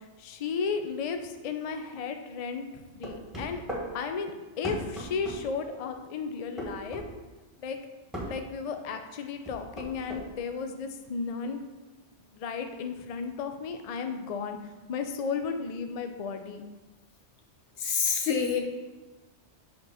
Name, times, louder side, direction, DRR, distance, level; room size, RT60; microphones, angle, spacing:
voice 1, 0.0-3.6 3.9-4.3 4.6-7.0 7.6-7.8 8.3-11.6 12.3-14.6 14.9-16.6, left 5 dB, 50° left, 6 dB, 0.4 m, -34 dB
sound 1, 3.0-3.9 4.6-5.4 6.6-7.1 8.1-8.3 9.4-10.2, right 1 dB, ahead, 1.2 m, -36 dB
voice 2, 17.8-18.6, left 6 dB, 90° left, 3 dB, 1.1 m, -26 dB
5.2 x 3.8 x 5.5 m, 1.2 s
omnidirectional pair, 1.2 m